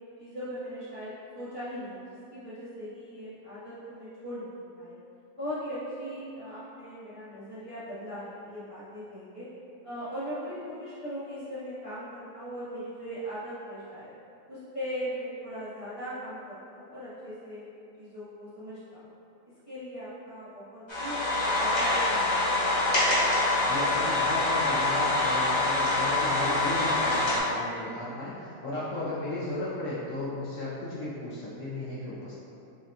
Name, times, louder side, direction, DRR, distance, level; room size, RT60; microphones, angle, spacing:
voice 1, 0.2-5.0 5.4-9.5 9.8-14.1 14.5-17.6 18.0-19.1 19.7-21.2 21.5-22.5, equal, 45° right, -13 dB, 0.4 m, -39 dB
sound 1, 20.9-27.4, left 2 dB, 25° left, 0.6 m, -25 dB
voice 2, 23.6-32.3, left 1 dB, 70° left, -7 dB, 0.7 m, -35 dB
6.0 x 2.1 x 2.7 m, 2.7 s
omnidirectional pair, 1.9 m